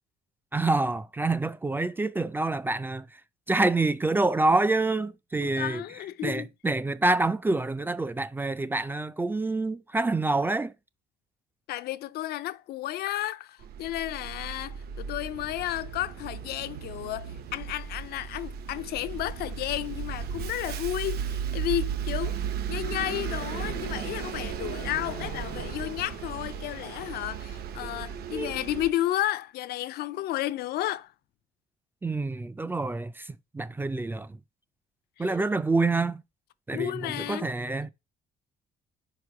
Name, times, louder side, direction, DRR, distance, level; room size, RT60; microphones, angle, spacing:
voice 1, 0.5-3.2 3.5-5.8 6.2-10.7 28.3-28.5 32.0-34.4 35.2-36.2 36.7-37.9, right 2 dB, 10° right, 0.4 m, -27 dB
voice 2, 5.4-6.5 11.7-22.4 22.7-31.1 35.2-35.3 36.7-37.5, left 14 dB, 70° left, 0.5 m, -32 dB
Bus, 13.6-28.9, right 8 dB, 65° right, 0.9 m, -35 dB
sound 1, 22.4-27.9, left 8 dB, 85° left, 1.1 m, -49 dB
4.8 x 4.6 x 4.7 m
cardioid pair, 110°, 17 cm